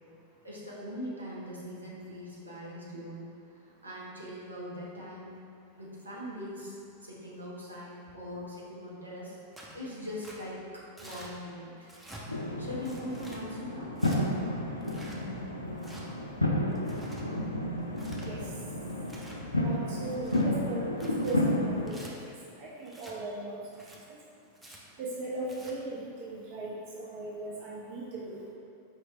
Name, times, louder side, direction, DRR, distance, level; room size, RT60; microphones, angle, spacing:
voice 1, 0.4-3.3 3.6-5.3 5.7-11.9 12.6-13.9, equal, 80° right, -6 dB, 0.9 m, -41 dB
Tearing, 9.5-9.8 10.2-10.4 11.0-11.3 11.8-12.2 12.8-13.4 14.0-14.2 14.8-15.2 15.8-16.0 16.7-17.2 17.8-18.3 18.9-19.4 20.0-20.4 20.9-21.4 21.9-22.1 22.9-23.1 23.7-24.0 24.5-24.8 25.4-25.7, right 1 dB, 10° right, 0.6 m, -48 dB
sound 1, 12.3-21.9, left 1 dB, 80° left, 0.4 m, -31 dB
voice 2, 19.6-22.0 22.6-23.6 24.1-24.2 25.0-28.4, right 2 dB, 50° right, -5 dB, 0.6 m, -38 dB
5.1 x 3.2 x 3.0 m, 2.5 s
figure-of-eight pair, 90°, 0 cm